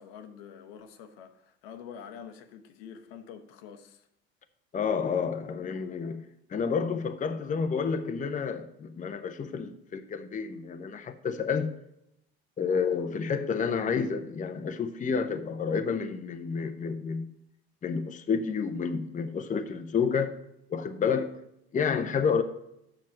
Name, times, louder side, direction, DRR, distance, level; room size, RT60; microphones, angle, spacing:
voice 1, 0.0-4.0, left 7 dB, 70° left, 1.1 m, -46 dB
voice 2, 4.7-6.2 6.5-11.7 12.6-17.3 17.8-20.3 20.7-21.4 21.7-22.4, left 6 dB, 25° left, 0.8 m, -30 dB
7.4 x 5.8 x 7.5 m
hypercardioid pair, 65°, 31 cm